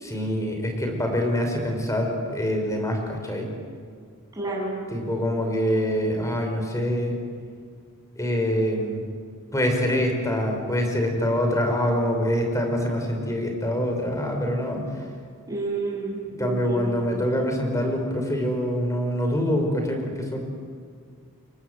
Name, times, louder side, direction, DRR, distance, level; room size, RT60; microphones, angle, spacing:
voice 1, 0.0-3.5 4.9-7.1 8.2-9.0 9.5-14.8 16.4-20.4, equal, 15° left, 3 dB, 5.1 m, -25 dB
voice 2, 4.3-4.7 15.5-17.1, right 2 dB, 15° right, -3 dB, 7.8 m, -30 dB
29.0 x 23.5 x 8.0 m, 2.1 s
head